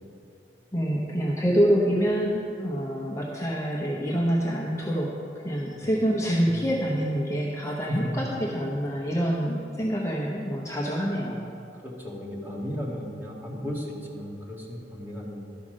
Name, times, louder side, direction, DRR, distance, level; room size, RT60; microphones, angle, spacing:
voice 1, 0.7-5.1 5.4-11.4, equal, 15° left, -3 dB, 0.9 m, -26 dB
voice 2, 11.8-15.4, equal, 10° right, -4 dB, 1.8 m, -35 dB
12.5 x 5.7 x 6.4 m, 2.7 s
head